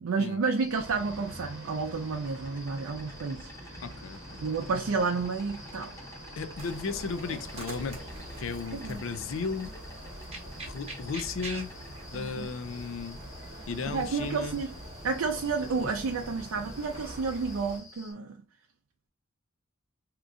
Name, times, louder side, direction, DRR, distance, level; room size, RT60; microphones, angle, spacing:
voice 1, 0.0-3.8 4.4-5.9 7.3-7.4 8.7-9.0 12.1-12.5 13.9-14.7 15.0-18.4, right 4 dB, 85° right, 0.4 m, -31 dB
Insect, 0.6-18.1, left 2 dB, 15° left, 0.6 m, -51 dB
sound 1, 0.7-17.2, right 1 dB, 70° right, 0.8 m, -47 dB
voice 2, 3.8-4.2 6.4-8.0 8.4-9.7 10.7-11.7 12.1-13.2 13.7-14.6, left 5 dB, 70° left, 0.4 m, -35 dB
sound 2, 6.6-17.8, right 1 dB, 30° right, 1.0 m, -44 dB
2.9 x 2.5 x 3.5 m
head